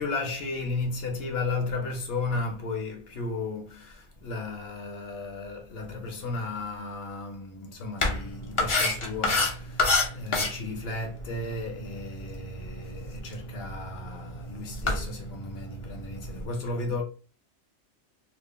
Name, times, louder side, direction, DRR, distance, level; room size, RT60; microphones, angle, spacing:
voice 1, 0.0-17.0, left 3 dB, 65° left, 0.9 m, -34 dB
sound 1, 8.0-16.5, left 3 dB, 40° left, 0.5 m, -31 dB
2.4 x 2.1 x 2.9 m
omnidirectional pair, 1.2 m